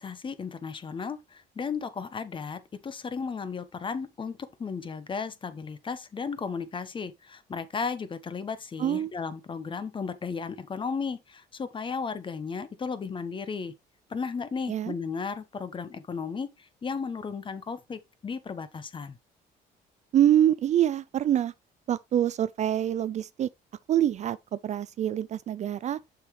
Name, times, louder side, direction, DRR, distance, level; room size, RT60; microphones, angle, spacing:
voice 1, 0.0-13.7 14.1-19.2, left 5 dB, 30° left, 1.0 m, -35 dB
voice 2, 8.8-9.1 14.7-14.9 20.1-21.5 21.9-23.5 23.9-26.0, right 11 dB, 45° right, 0.4 m, -25 dB
6.7 x 5.9 x 3.2 m
cardioid pair, 110°, 17 cm